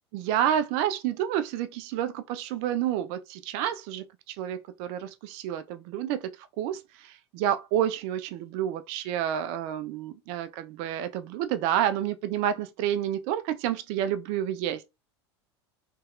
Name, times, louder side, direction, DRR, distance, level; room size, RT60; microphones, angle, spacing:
voice 1, 0.1-14.9, right 10 dB, 50° right, 0.4 m, -29 dB
2.9 x 2.7 x 2.3 m
figure-of-eight pair, 80°, 15 cm